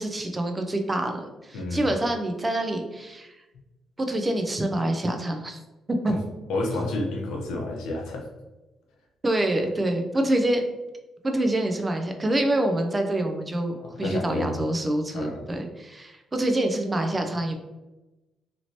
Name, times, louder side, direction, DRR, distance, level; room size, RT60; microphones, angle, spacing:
voice 1, 0.0-3.3 4.0-5.6 5.9-6.1 9.2-10.6 11.2-17.6, right 1 dB, 20° right, 4 dB, 0.4 m, -26 dB
voice 2, 1.5-1.9 6.1-6.2 6.5-8.3 13.8-14.6 15.1-15.4, left 2 dB, 85° left, 0 dB, 0.7 m, -30 dB
2.9 x 2.8 x 2.8 m, 1.1 s
cardioid pair, 90°, 0 cm